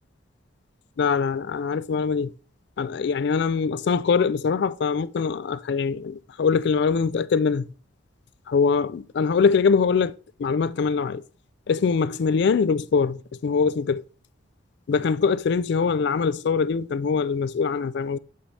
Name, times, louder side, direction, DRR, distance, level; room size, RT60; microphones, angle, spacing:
voice 1, 1.0-2.3 2.8-7.7 8.5-10.1 10.4-11.2 11.7-14.0 14.9-18.2, left 5 dB, 55° left, 0.3 m, -23 dB
8.5 x 5.6 x 3.3 m
head